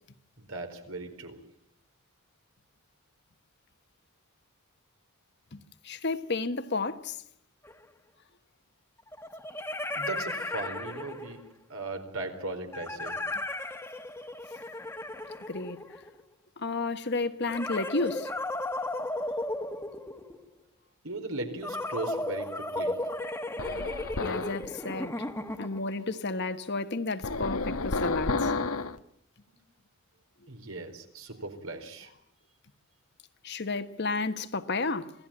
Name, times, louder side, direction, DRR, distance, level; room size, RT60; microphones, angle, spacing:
voice 1, 0.4-1.4 9.9-11.4 11.7-13.2 21.0-23.0 30.5-32.1, right 2 dB, 75° right, 4.4 m, -38 dB
voice 2, 5.5-7.2 15.5-16.0 16.6-18.3 24.2-25.2 25.6-28.5 33.4-35.1, left 3 dB, 50° left, 1.3 m, -32 dB
sound 1, 7.6-7.7 9.1-11.5 12.7-16.2 17.4-20.5 21.6-25.9, left 2 dB, 10° left, 1.5 m, -35 dB
sound 2, 23.6-24.7 27.2-29.0, left 3 dB, 80° left, 1.2 m, -31 dB
26.5 x 17.5 x 8.9 m
head